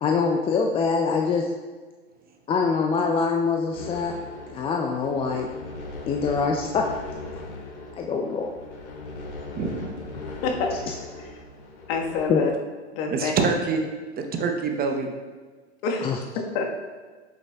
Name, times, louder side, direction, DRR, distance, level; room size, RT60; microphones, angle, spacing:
voice 1, 0.0-1.5 2.5-4.1 4.5-5.5 6.1-6.8 7.9-8.5 12.3-12.4 16.0-16.2, left 5 dB, 15° left, 2 dB, 0.3 m, -24 dB
sound 1, 3.7-12.3, left 2 dB, 75° left, 2.0 m, -39 dB
voice 2, 9.6-10.0 13.1-13.8 14.2-15.1, right 4 dB, 25° right, 4 dB, 0.8 m, -25 dB
voice 3, 10.4-10.8 11.9-12.5 12.9-13.3 15.8-16.1 16.5-16.8, left 4 dB, 55° left, 1 dB, 1.4 m, -26 dB
8.1 x 6.9 x 2.3 m, 1.4 s
hypercardioid pair, 105°, 34 cm